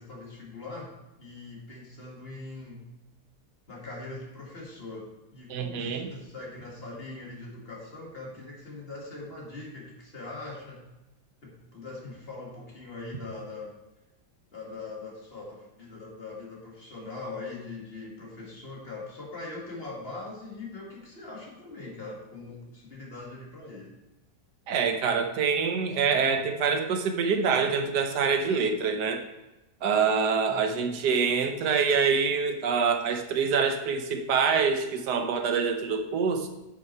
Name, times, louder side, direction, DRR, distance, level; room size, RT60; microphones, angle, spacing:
voice 1, 0.0-2.9 3.7-10.9 11.4-13.7 14.5-23.9 30.5-30.9, left 3 dB, 35° left, -2 dB, 2.1 m, -41 dB
voice 2, 5.5-6.1 24.7-29.2 29.8-36.5, right 5 dB, 90° right, 5 dB, 1.5 m, -25 dB
9.4 x 6.0 x 4.5 m, 0.98 s
omnidirectional pair, 1.7 m